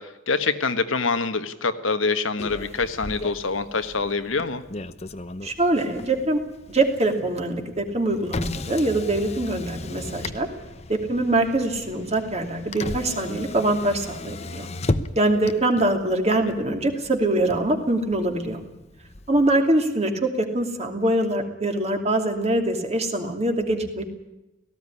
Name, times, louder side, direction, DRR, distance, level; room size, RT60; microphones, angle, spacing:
voice 1, 0.0-4.6, left 4 dB, 85° left, 9 dB, 1.4 m, -25 dB
Motor vehicle (road), 2.4-19.5, left 2 dB, 35° left, 0.9 m, -36 dB
voice 2, 5.4-6.4 6.7-10.5 10.9-14.7 15.1-18.6 19.3-24.0, right 2 dB, 35° right, 4 dB, 2.8 m, -23 dB
18.0 x 15.5 x 9.8 m, 0.95 s
head